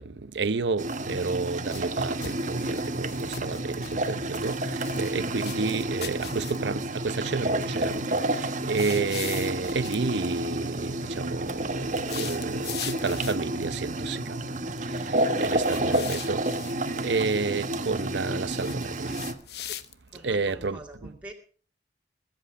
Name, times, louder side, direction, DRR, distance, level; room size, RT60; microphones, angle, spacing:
voice 1, 0.0-8.0 8.3-14.4 14.9-16.4 16.9-19.1 20.2-21.1, right 4 dB, 85° right, 0.8 m, -31 dB
sound 1, 0.8-19.3, right 1 dB, 45° right, 1.3 m, -30 dB
sound 2, 1.2-1.9 2.2-4.1 4.3-5.1 5.4-6.8 8.7-10.0 11.9-13.5 15.6-16.7 18.5-20.2, left 11 dB, 65° left, 0.9 m, -40 dB
voice 2, 15.5-16.0 20.1-21.3, right 1 dB, 5° right, 2.2 m, -45 dB
21.5 x 8.1 x 4.8 m
head